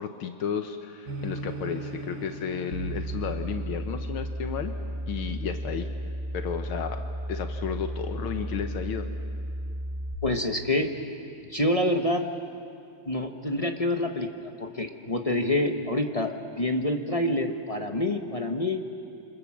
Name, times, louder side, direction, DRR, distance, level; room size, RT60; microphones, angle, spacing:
voice 1, 0.0-4.7 5.1-5.9 6.3-7.0 7.3-9.1, left 7 dB, 80° left, 7 dB, 1.9 m, -33 dB
sound 1, 1.0-6.7, right 2 dB, 70° right, 3.4 m, -41 dB
sound 2, 2.7-10.1, right 1 dB, 40° right, 3.1 m, -34 dB
voice 2, 10.2-10.9 11.5-12.3 13.1-18.8, left 1 dB, 25° left, 5 dB, 0.9 m, -27 dB
27.5 x 26.0 x 7.4 m, 2.5 s
omnidirectional pair, 2.3 m